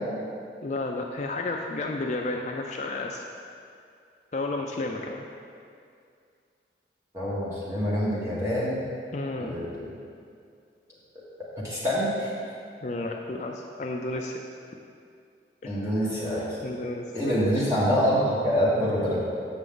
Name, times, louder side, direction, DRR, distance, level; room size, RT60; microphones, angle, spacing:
voice 1, 0.6-3.2 4.3-5.2 9.1-9.6 12.8-14.4 15.6-15.8 16.6-17.7, left 2 dB, 40° left, 1 dB, 0.4 m, -32 dB
voice 2, 7.1-8.8 9.4-9.9 11.6-12.3 15.6-16.6 17.1-19.2, equal, 15° right, -8 dB, 1.7 m, -26 dB
8.0 x 6.1 x 3.8 m, 2.3 s
head